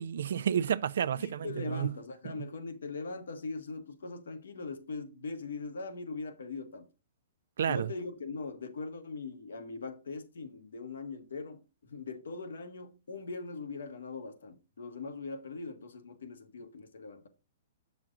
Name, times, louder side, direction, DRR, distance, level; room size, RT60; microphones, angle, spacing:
voice 1, 0.0-1.9 7.6-7.9, right 9 dB, 75° right, 0.4 m, -30 dB
voice 2, 1.1-6.8 7.6-17.3, left 3 dB, 85° left, 1.5 m, -41 dB
7.5 x 6.1 x 3.7 m
hypercardioid pair, 140°, 0 cm